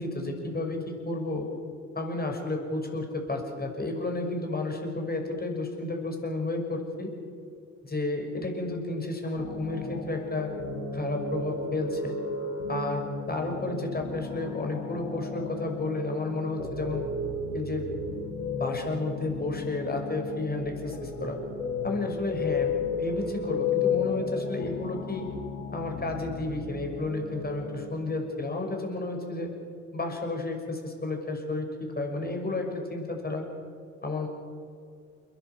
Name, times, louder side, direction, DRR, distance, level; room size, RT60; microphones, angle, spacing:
voice 1, 0.0-1.5 1.9-7.1 7.8-10.5 10.9-12.2 12.7-17.0 17.5-17.9 18.5-21.4 21.8-22.7 23.0-25.3 25.7-29.5 29.9-31.7 31.9-33.4 34.0-34.3, left 2 dB, 25° left, 3 dB, 6.1 m, -32 dB
sound 1, 9.3-27.9, left 4 dB, 85° left, 3.6 m, -34 dB
29.5 x 11.5 x 8.3 m, 2.4 s
hypercardioid pair, 50°, 37 cm